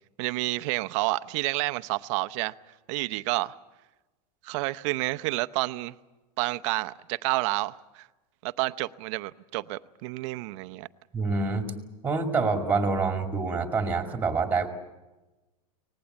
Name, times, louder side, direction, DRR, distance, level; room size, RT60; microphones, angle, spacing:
voice 1, 0.2-2.5 2.9-3.5 4.4-5.9 6.4-8.1 8.4-10.9, right 21 dB, 50° right, 0.7 m, -29 dB
voice 2, 11.1-11.7 12.0-14.7, right 4 dB, 10° right, 2.4 m, -26 dB
24.0 x 19.5 x 8.2 m
supercardioid pair, 150°, 20 cm